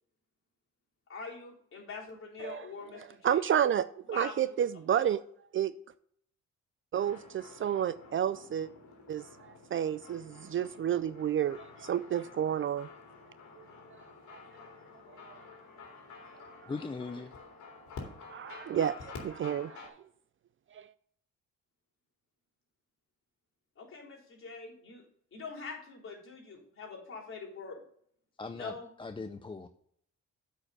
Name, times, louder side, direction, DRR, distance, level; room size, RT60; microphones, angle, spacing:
voice 1, 1.1-3.4 4.1-4.5 4.9-5.0 23.8-25.0 25.3-27.8 28.5-28.9, left 4 dB, 45° left, -4 dB, 3.6 m, -44 dB
voice 2, 3.2-5.2 5.5-5.7 6.9-8.7 9.1-12.9 13.6-13.7 14.3-14.4 15.2-15.4 16.6-16.7 18.3-19.9 20.7-20.9, right 9 dB, 45° right, 15 dB, 0.4 m, -31 dB
sound 1, 7.0-19.9, left 4 dB, 70° left, 2.5 m, -50 dB
voice 3, 16.7-17.3 28.4-29.7, left 4 dB, 15° left, 8 dB, 0.5 m, -40 dB
8.5 x 5.1 x 6.5 m, 0.66 s
cardioid pair, 90°, 30 cm